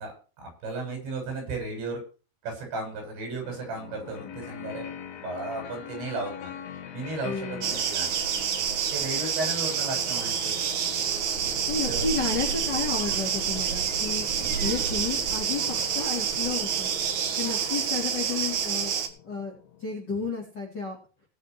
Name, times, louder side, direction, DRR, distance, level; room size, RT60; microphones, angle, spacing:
voice 1, 0.0-2.0 2.4-4.9 5.2-6.5 6.9-8.1 8.9-10.5 11.9-12.1, right 3 dB, 80° right, 2 dB, 9.4 m, -34 dB
sound 1, 3.4-20.0, left 9 dB, 80° left, 1.5 m, -44 dB
voice 2, 7.2-7.9 11.7-14.2 14.6-16.9 17.4-18.9 19.2-19.5 19.8-21.0, left 4 dB, 25° left, -2 dB, 3.2 m, -32 dB
sound 2, 7.6-19.1, right 7 dB, 60° right, 2.2 m, -28 dB
20.0 x 6.8 x 4.8 m, 0.35 s
omnidirectional pair, 5.1 m